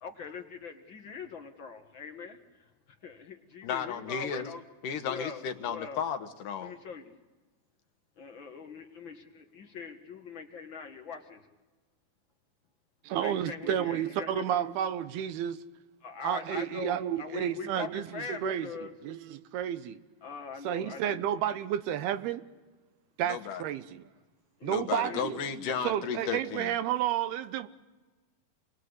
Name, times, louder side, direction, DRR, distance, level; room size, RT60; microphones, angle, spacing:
voice 1, 0.0-2.4 3.0-4.6 5.1-6.0 6.6-7.1 8.2-11.4 13.2-14.7 16.0-18.9 20.2-21.2 24.6-25.4, left 5 dB, 50° left, 1.5 m, -42 dB
voice 2, 3.6-4.5 4.8-6.7 23.3-23.6 24.7-26.7, left 7 dB, 65° left, 2.6 m, -34 dB
voice 3, 13.0-15.6 16.2-20.0 20.6-22.4 23.2-24.0 24.6-25.4 25.8-27.7, right 10 dB, 85° right, 2.9 m, -31 dB
28.0 x 21.0 x 8.0 m
omnidirectional pair, 4.4 m